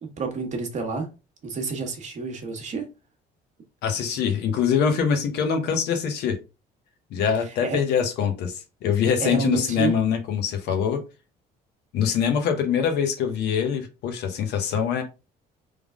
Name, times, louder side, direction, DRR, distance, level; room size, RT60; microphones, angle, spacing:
voice 1, 0.0-1.1 1.4-2.9 7.6-7.8 9.2-10.0, right 5 dB, 45° right, 1.2 m, -29 dB
voice 2, 3.8-6.4 7.1-11.0 11.9-15.0, left 7 dB, 80° left, 1.0 m, -24 dB
3.7 x 3.4 x 3.6 m
cardioid pair, 110°, 17 cm